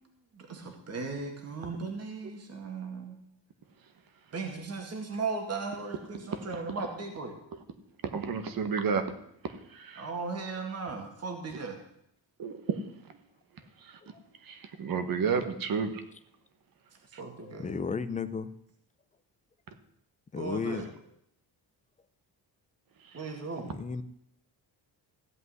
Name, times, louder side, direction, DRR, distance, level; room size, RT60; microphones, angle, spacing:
voice 1, 0.4-3.2 4.3-7.3 10.0-11.8 17.2-17.7 20.4-20.9 23.1-23.7, right 4 dB, 35° right, 3 dB, 2.1 m, -37 dB
voice 2, 8.0-9.0 9.4-10.1 12.4-12.8 13.8-14.0 14.4-16.0 17.1-17.2, right 6 dB, 50° right, 9 dB, 1.4 m, -31 dB
voice 3, 17.4-18.5 20.3-20.9 23.5-24.0, left 5 dB, 15° left, 12 dB, 0.5 m, -34 dB
15.5 x 5.5 x 9.6 m, 0.75 s
cardioid pair, 180°, 44 cm